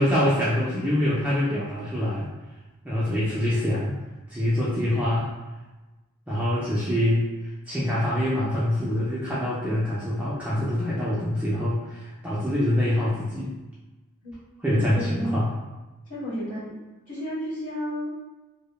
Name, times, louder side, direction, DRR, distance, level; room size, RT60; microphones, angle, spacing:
voice 1, 0.0-2.3 2.8-3.9 4.3-5.3 6.3-7.3 7.7-13.5 14.6-15.6, left 1 dB, 5° right, -9 dB, 0.4 m, -25 dB
voice 2, 14.9-15.4 16.1-16.7 17.1-18.1, equal, 40° left, -10 dB, 1.4 m, -31 dB
3.0 x 2.1 x 2.3 m, 1.1 s
head